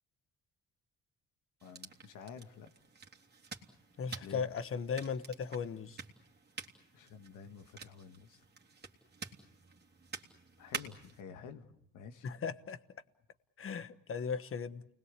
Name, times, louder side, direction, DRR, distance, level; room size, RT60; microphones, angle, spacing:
voice 1, 1.6-2.7 4.2-4.5 6.9-8.4 10.6-12.3, left 6 dB, 80° left, 1.7 m, -50 dB
sound 1, 1.6-11.2, right 5 dB, 35° right, 3.0 m, -49 dB
voice 2, 4.0-6.0 12.2-12.8 13.6-14.9, left 6 dB, 45° left, 1.3 m, -37 dB
29.5 x 20.5 x 8.2 m
cardioid pair, 90°, 30 cm